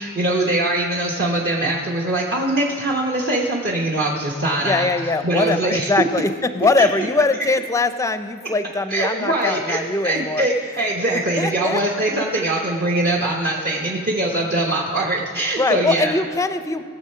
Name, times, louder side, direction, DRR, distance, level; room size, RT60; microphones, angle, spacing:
voice 1, 0.0-5.9 6.8-6.9 8.9-9.8 10.0-16.1, right 1 dB, 45° right, -2 dB, 1.0 m, -22 dB
voice 2, 4.6-10.5 11.4-11.8 15.6-16.8, left 3 dB, 15° left, 11 dB, 0.5 m, -21 dB
19.0 x 6.9 x 5.6 m, 2.1 s
head